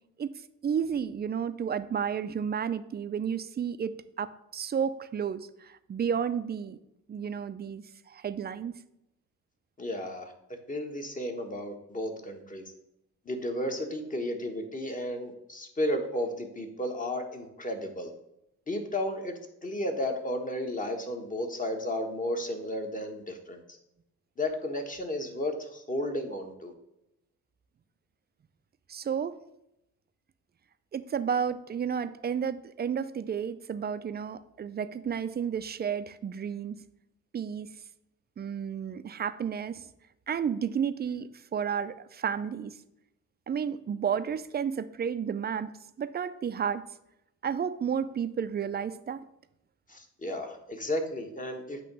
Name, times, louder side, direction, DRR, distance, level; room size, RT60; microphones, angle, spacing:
voice 1, 0.6-6.8 7.1-8.7 28.9-29.4 30.9-36.8 37.3-37.7 38.4-39.9 40.3-42.7 43.5-45.7 46.0-46.8 47.4-49.2, right 7 dB, 35° right, 13 dB, 0.4 m, -32 dB
voice 2, 9.8-10.3 10.7-12.7 13.2-18.1 18.7-19.3 19.6-23.6 24.4-26.7 49.9-51.8, left 1 dB, 25° left, 4 dB, 1.3 m, -33 dB
8.4 x 3.0 x 6.0 m, 0.83 s
cardioid pair, 90°, 30 cm